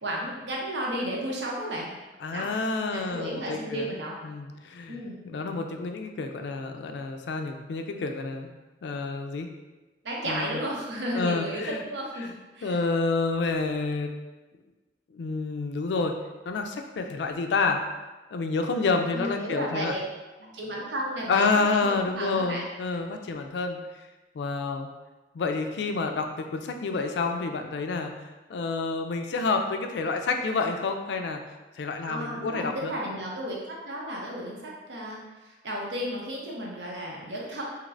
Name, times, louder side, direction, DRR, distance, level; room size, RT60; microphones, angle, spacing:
voice 1, 0.0-1.9 2.3-2.5 2.9-4.1 4.9-5.2 10.0-12.8 19.1-20.0 20.5-22.6 32.0-37.6, right 1 dB, 85° right, -3 dB, 0.8 m, -33 dB
voice 2, 2.2-3.9 4.2-8.5 8.8-9.5 10.2-10.6 11.1-11.8 12.2-12.3 12.6-14.1 15.1-16.1 16.5-17.8 18.3-20.0 20.5-20.6 21.3-23.8 24.3-24.9 25.3-31.4 31.8-32.9, left 4 dB, 75° left, 5 dB, 0.3 m, -29 dB
3.2 x 2.9 x 2.5 m, 1.2 s
head